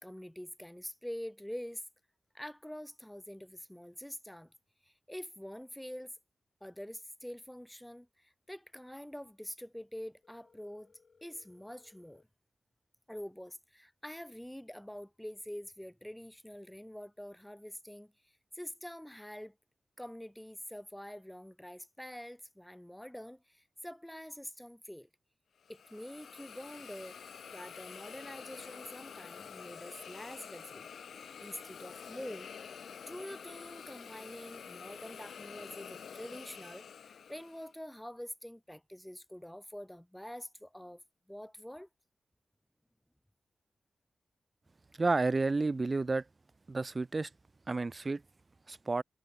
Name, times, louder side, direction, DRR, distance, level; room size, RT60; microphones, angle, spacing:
voice 1, 0.0-1.8 2.3-4.5 4.8-6.1 6.6-10.9 11.2-12.2 13.1-18.1 18.5-19.6 20.0-25.1 25.7-27.2 27.5-41.0 41.3-41.9, equal, 5° left, 2.0 m, -46 dB
Telephone, 10.2-12.2, left 5 dB, 50° left, 3.8 m, -66 dB
Hiss, 25.6-37.7, left 7 dB, 85° left, 0.5 m, -48 dB
voice 2, 45.0-46.2 46.7-47.3 47.7-48.2 48.7-49.0, right 3 dB, 35° right, 0.5 m, -31 dB
wide cardioid pair, 100°, 0 cm